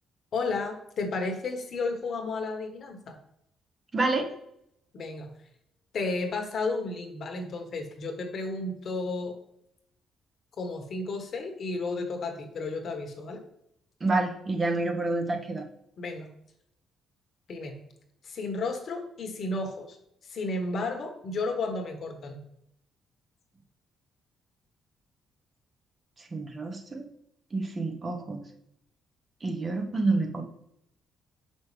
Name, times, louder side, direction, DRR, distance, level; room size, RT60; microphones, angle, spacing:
voice 1, 0.3-3.1 4.9-5.3 5.9-9.3 10.6-13.4 16.0-16.3 17.5-17.8 18.2-20.0 20.3-22.4, left 3 dB, 55° left, 4 dB, 1.3 m, -32 dB
voice 2, 3.9-4.3 14.0-15.6 26.2-27.0 27.5-28.4 29.4-30.4, right 2 dB, 35° right, 4 dB, 1.1 m, -28 dB
6.1 x 5.5 x 3.3 m, 0.76 s
cardioid pair, 90°, 0 cm